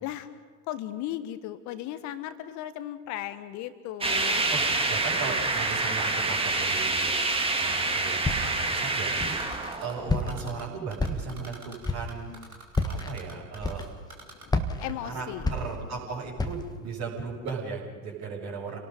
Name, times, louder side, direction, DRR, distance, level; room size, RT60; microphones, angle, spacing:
voice 1, 0.7-4.4 14.3-15.5, left 12 dB, 45° left, 11 dB, 1.5 m, -36 dB
sound 1, 4.0-10.7, right 3 dB, 15° right, 2.2 m, -27 dB
voice 2, 4.5-7.1 7.5-12.3 12.8-13.9 15.0-18.8, right 4 dB, 40° right, -7 dB, 5.8 m, -37 dB
Typing, 4.9-6.9 7.2-8.0 8.3-9.9 10.3-10.6 10.9-13.8 14.1-14.4, right 2 dB, 90° right, 3.2 m, -46 dB
Walk footsteps, 8.2-8.7 9.2-9.7 10.1-10.6 11.0-11.5 11.8-12.2 12.7-13.1 13.6-14.1 14.5-16.0 16.4-16.8, left 2 dB, 10° left, 1.5 m, -30 dB
29.5 x 18.5 x 5.3 m, 1.5 s
figure-of-eight pair, 85°, 42 cm